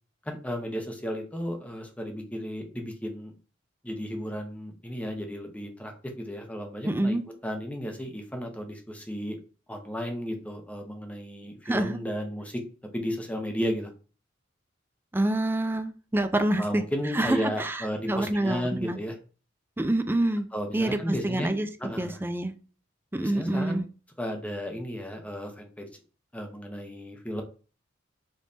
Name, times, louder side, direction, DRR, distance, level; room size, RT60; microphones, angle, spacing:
voice 1, 0.2-3.3 3.8-7.1 7.4-9.4 9.7-12.6 12.9-13.9 16.6-19.2 20.5-21.5 21.8-22.2 23.2-23.8 24.2-26.0 26.3-27.4, equal, 5° left, 3 dB, 0.8 m, -34 dB
voice 2, 6.8-7.2 11.7-12.0 15.1-16.8 17.1-19.0 19.8-20.5 20.7-21.7 22.0-22.5 23.1-23.9, right 1 dB, 10° right, 8 dB, 0.4 m, -27 dB
5.2 x 3.2 x 2.7 m, 0.36 s
head